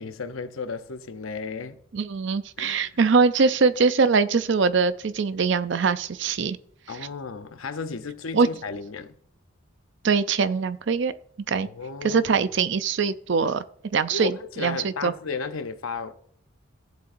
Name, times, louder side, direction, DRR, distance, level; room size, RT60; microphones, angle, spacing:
voice 1, 0.0-1.8 2.6-3.0 6.9-9.1 11.6-12.5 14.1-16.2, left 4 dB, 80° left, 0.7 m, -34 dB
voice 2, 1.9-6.6 8.3-8.5 10.0-11.1 11.5-11.7 12.0-13.6 13.9-15.1, right 5 dB, 60° right, 0.5 m, -22 dB
14.5 x 7.6 x 2.6 m
head